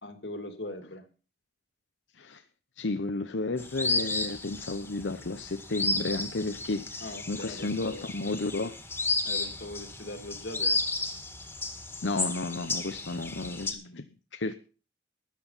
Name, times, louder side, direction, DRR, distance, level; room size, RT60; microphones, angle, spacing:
voice 1, 0.0-1.0 7.0-8.1 9.2-10.8, left 1 dB, 70° left, 2.4 m, -40 dB
voice 2, 2.8-7.0 7.3-8.8 12.0-14.5, left 3 dB, 85° left, 0.8 m, -32 dB
sound 1, 3.6-13.7, left 2 dB, 10° left, 1.9 m, -33 dB
13.5 x 10.0 x 5.6 m
head